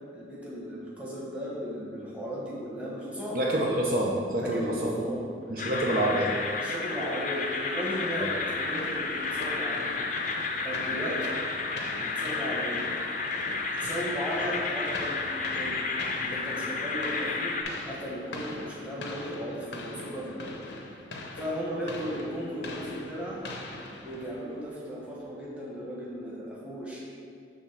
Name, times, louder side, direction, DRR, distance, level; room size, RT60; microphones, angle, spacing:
voice 1, 0.1-3.4 4.4-5.6 6.5-9.9 10.6-11.4 12.0-12.8 13.7-15.9 16.2-17.6 17.8-20.6 21.4-23.4 24.0-27.0, equal, 5° right, -6 dB, 1.2 m, -36 dB
voice 2, 3.3-5.0 5.5-6.4 8.2-8.3, right 1 dB, 50° right, -2 dB, 0.6 m, -27 dB
sound 1, 5.6-17.6, left 4 dB, 45° left, 0.6 m, -31 dB
sound 2, 7.8-24.6, left 2 dB, 80° left, 0.7 m, -42 dB
6.1 x 3.6 x 5.9 m, 2.3 s
head